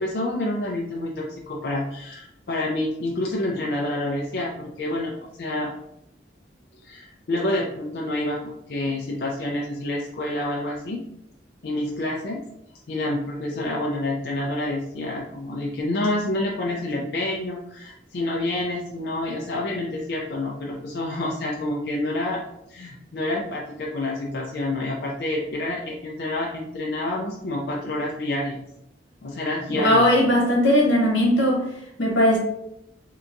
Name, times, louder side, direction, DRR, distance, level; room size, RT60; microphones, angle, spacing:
voice 1, 0.0-5.1 5.4-5.7 6.8-11.0 11.6-12.4 12.9-22.4 22.7-28.6 29.2-30.0, left 1 dB, 55° left, -2 dB, 0.4 m, -28 dB
voice 2, 29.7-31.6 32.0-32.4, left 1 dB, 90° left, -2 dB, 1.2 m, -18 dB
3.3 x 2.8 x 2.5 m, 0.80 s
head